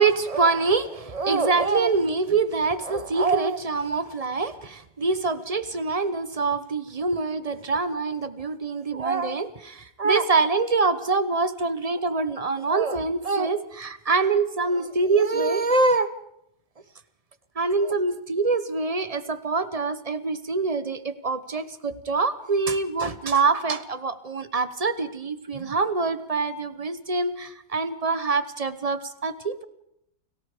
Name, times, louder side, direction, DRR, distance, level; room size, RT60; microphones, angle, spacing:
voice 1, 0.0-16.1 17.6-29.6, right 4 dB, 25° right, 12 dB, 0.8 m, -25 dB
29.5 x 18.5 x 5.0 m, 0.75 s
omnidirectional pair, 1.8 m